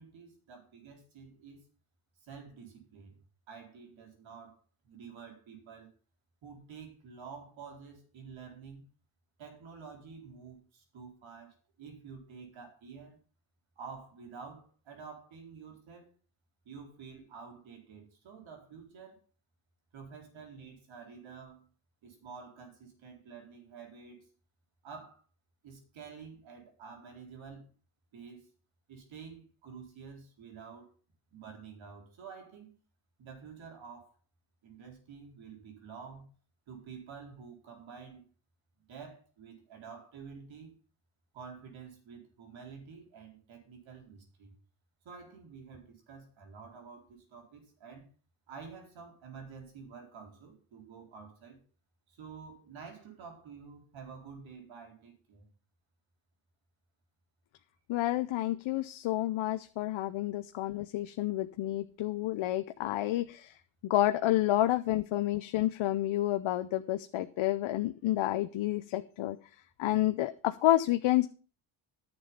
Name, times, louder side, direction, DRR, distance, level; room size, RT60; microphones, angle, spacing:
voice 1, 0.0-1.7 2.2-5.9 6.4-8.8 9.4-13.2 13.8-16.1 16.6-19.2 19.9-21.7 22.0-24.3 24.8-25.2 25.6-27.7 28.1-28.5 28.9-30.9 31.3-32.7 33.2-34.2 34.6-36.3 36.7-38.3 38.8-40.8 41.3-44.5 45.0-48.1 48.5-51.6 52.1-55.5, right 5 dB, 70° right, 4.2 m, -49 dB
voice 2, 57.9-63.6 63.8-69.4 69.8-71.3, left 15 dB, 70° left, 0.8 m, -29 dB
11.0 x 7.1 x 5.6 m
cardioid pair, 110°, 49 cm